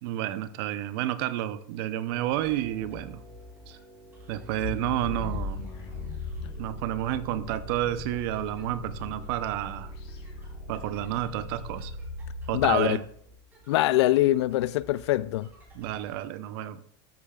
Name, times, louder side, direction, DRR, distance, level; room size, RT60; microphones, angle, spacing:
voice 1, 0.0-3.2 3.7-3.8 4.3-5.6 6.6-9.9 10.7-11.9 12.5-13.0 15.7-16.8, right 13 dB, 60° right, 0.7 m, -30 dB
sound 1, 2.1-13.3, right 1 dB, 5° left, 3.5 m, -54 dB
sound 2, 2.2-16.3, left 1 dB, 15° right, 3.2 m, -51 dB
sound 3, 4.6-12.7, left 2 dB, 70° left, 3.0 m, -38 dB
voice 2, 12.5-13.0 13.7-15.5, left 16 dB, 90° left, 0.4 m, -23 dB
13.0 x 8.5 x 2.4 m
supercardioid pair, 155°, 14 cm